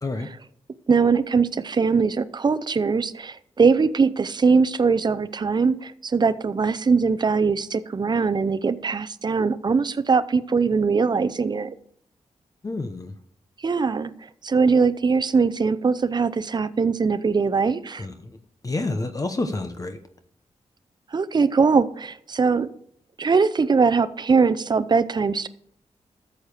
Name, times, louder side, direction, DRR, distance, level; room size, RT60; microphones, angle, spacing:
voice 1, 0.9-11.8 13.6-14.1 14.4-18.1 21.1-22.7 23.2-25.5, right 5 dB, 35° right, 14 dB, 0.6 m, -21 dB
voice 2, 12.6-13.1 18.0-18.4 18.6-20.0, left 2 dB, 30° left, 7 dB, 0.9 m, -29 dB
13.5 x 7.2 x 5.0 m, 0.67 s
wide cardioid pair, 120°, 12 cm